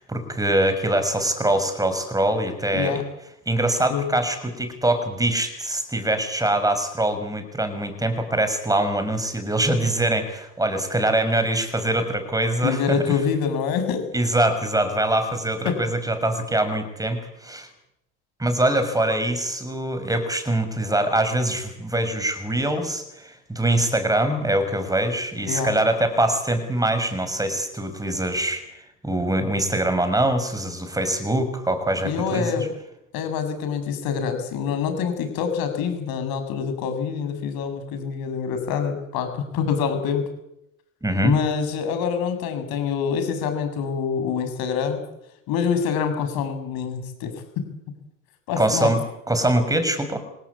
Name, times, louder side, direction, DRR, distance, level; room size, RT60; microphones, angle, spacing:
voice 1, 0.0-3.0 3.5-13.2 14.1-17.7 18.4-28.6 29.0-32.7 41.0-41.4 48.6-49.0 49.3-50.2, right 1 dB, 10° right, 9 dB, 6.3 m, -23 dB
voice 2, 12.6-14.1 15.7-15.8 25.4-25.7 32.0-32.7 33.1-40.3 41.2-45.0 45.5-47.6 48.5-48.9, left 7 dB, 60° left, 8 dB, 7.3 m, -26 dB
26.5 x 18.0 x 8.6 m, 0.81 s
hypercardioid pair, 90°, 41 cm